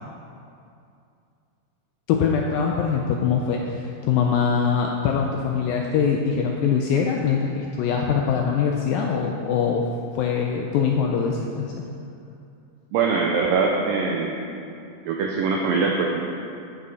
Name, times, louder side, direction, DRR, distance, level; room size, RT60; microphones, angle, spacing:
voice 1, 2.1-9.9 10.2-11.7, left 6 dB, 80° left, 1 dB, 2.1 m, -23 dB
voice 2, 12.9-14.4 15.1-16.3, right 4 dB, 80° right, 0 dB, 2.1 m, -22 dB
11.5 x 7.9 x 4.9 m, 2.5 s
omnidirectional pair, 4.7 m